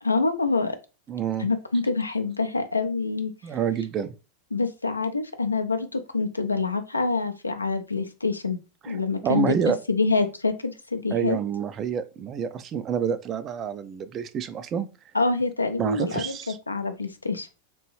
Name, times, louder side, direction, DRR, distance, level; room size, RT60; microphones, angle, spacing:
voice 1, 0.0-0.8 1.4-3.3 4.5-8.6 8.9-9.6 9.9-11.4 15.1-17.5, left 3 dB, 80° left, 0.4 m, -26 dB
voice 2, 1.1-1.5 3.4-4.1 8.8-9.8 11.1-14.9 15.8-16.6, right 7 dB, 30° right, 0.3 m, -28 dB
3.0 x 2.6 x 3.0 m
figure-of-eight pair, 90°, 0 cm